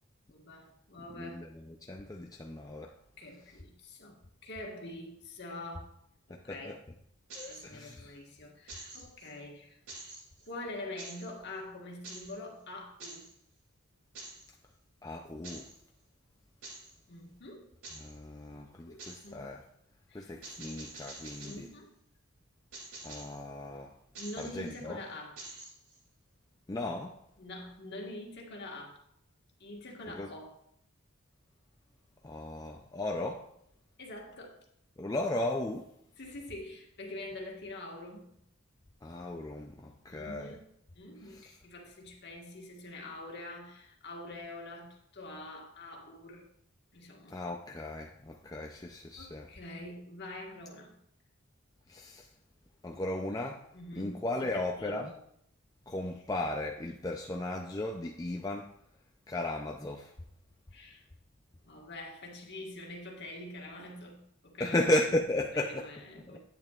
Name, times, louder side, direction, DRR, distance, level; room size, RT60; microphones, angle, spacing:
voice 1, 0.3-1.5 3.2-6.0 6.3-6.8 7.5-9.8 10.5-13.3 17.1-17.7 18.9-19.5 20.1-20.3 21.4-21.9 24.1-25.4 27.4-29.0 29.6-30.6 34.0-34.6 36.2-38.3 40.1-40.7 40.9-46.5 46.9-47.4 49.2-51.0 53.7-55.1 60.7-61.0 61.6-64.9 65.5-66.4, left 1 dB, 50° left, 1.5 m, -45 dB
voice 2, 1.2-2.9 6.3-6.8 7.3-8.2 15.0-15.7 18.0-19.6 20.1-21.7 23.0-23.9 24.4-25.0 26.7-27.2 30.1-30.3 32.2-33.5 35.0-35.9 39.0-40.5 41.3-41.5 47.3-49.5 51.9-52.3 52.8-53.6 54.0-55.1 55.9-58.7 59.3-60.1 64.6-65.9 66.3-66.4, left 1 dB, 15° left, 0.4 m, -35 dB
sound 1, 7.3-8.0 8.7-9.3 9.9-10.5 11.0-11.3 12.0-12.4 13.0-13.3 14.2-14.5 15.4-15.8 16.6-16.9 17.8-18.2 19.0-19.3 20.4-21.7 22.7-23.4 24.2-24.8 25.4-26.0, right 2 dB, 75° right, 2.4 m, -47 dB
10.5 x 8.8 x 2.4 m
head